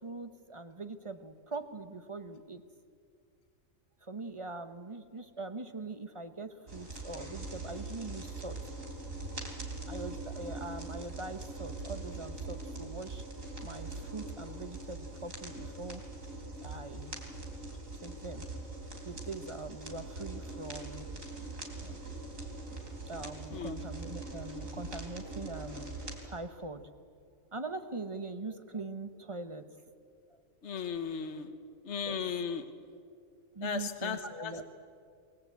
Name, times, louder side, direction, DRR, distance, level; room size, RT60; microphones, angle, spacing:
voice 1, 0.0-2.6 4.0-8.6 9.9-13.2 13.6-16.0 16.6-17.1 18.0-18.4 19.0-21.1 21.8-22.0 23.1-26.9 27.5-29.7 30.3-30.4 32.0-32.2 33.5-34.6, right 3 dB, 25° right, 9 dB, 1.0 m, -42 dB
sound 1, 6.7-26.2, right 2 dB, 75° right, 3.9 m, -42 dB
voice 2, 30.6-31.5 31.8-32.7 33.6-34.5, left 6 dB, 60° left, 7 dB, 1.4 m, -36 dB
27.0 x 20.0 x 8.2 m, 2.3 s
omnidirectional pair, 1.4 m